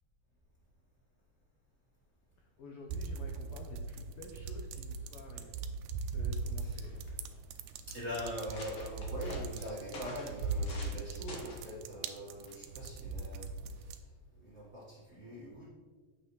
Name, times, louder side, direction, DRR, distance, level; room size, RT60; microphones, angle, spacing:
voice 1, 2.4-5.6 6.0-7.1, left 3 dB, 75° left, 1 dB, 1.3 m, -50 dB
sound 1, 2.9-14.0, right 4 dB, 80° right, 1.9 m, -40 dB
sound 2, 6.4-6.5 6.7-7.3 7.9-8.0 8.3-11.0 11.3-11.7 12.5-12.7, left 2 dB, 50° left, 1.9 m, -48 dB
voice 2, 7.9-14.0 14.4-15.7, equal, 30° right, -8 dB, 1.4 m, -43 dB
8.7 x 7.3 x 3.2 m, 1.5 s
omnidirectional pair, 3.5 m